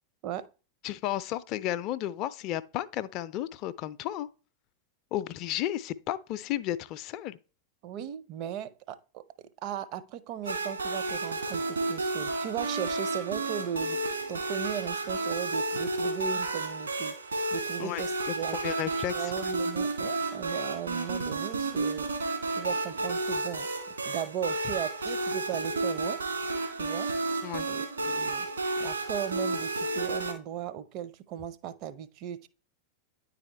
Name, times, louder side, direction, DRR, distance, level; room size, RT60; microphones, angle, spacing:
voice 1, 0.8-4.3 5.1-7.4 17.8-18.0 18.5-19.5 27.4-27.7, left 13 dB, 40° left, 0.4 m, -33 dB
voice 2, 7.8-17.2 17.5-18.6 19.1-22.1 22.5-23.7 24.0-26.2 26.8-27.1 27.7-28.5 28.8-32.5, right 9 dB, 40° right, 0.6 m, -37 dB
sound 1, 10.5-30.3, right 3 dB, 70° right, 1.7 m, -32 dB
9.8 x 4.1 x 4.2 m
figure-of-eight pair, 90°, 0 cm